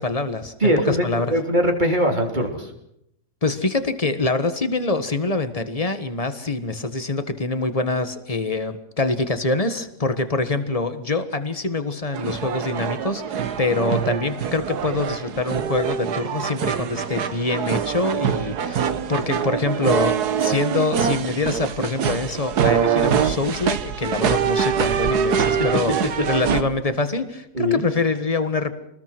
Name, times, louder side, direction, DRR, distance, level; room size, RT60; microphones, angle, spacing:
voice 1, 0.0-1.4 3.4-18.8 19.1-25.9 26.3-28.7, left 3 dB, 25° left, 10 dB, 1.6 m, -25 dB
voice 2, 0.6-2.7 25.6-25.7 26.4-26.6 27.5-27.8, equal, 30° right, 3 dB, 3.6 m, -21 dB
sound 1, 12.1-26.6, right 8 dB, 80° right, 1.6 m, -24 dB
27.5 x 20.0 x 6.2 m, 0.77 s
omnidirectional pair, 1.7 m